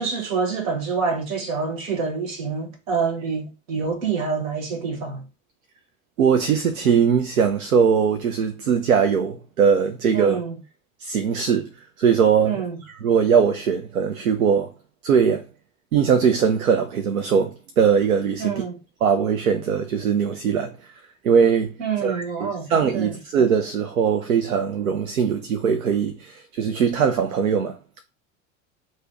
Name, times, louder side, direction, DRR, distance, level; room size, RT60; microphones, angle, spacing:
voice 1, 0.0-5.2 10.1-10.5 12.4-12.8 18.4-18.8 21.8-22.7 22.9-23.1, right 5 dB, 70° right, 1.3 m, -26 dB
voice 2, 6.2-10.4 11.0-11.7 12.0-12.6 13.0-14.7 15.0-15.5 15.9-18.5 19.0-20.8 21.2-21.7 22.0-27.8, right 6 dB, 85° right, 0.6 m, -20 dB
3.2 x 2.7 x 3.5 m
hypercardioid pair, 85°, 41 cm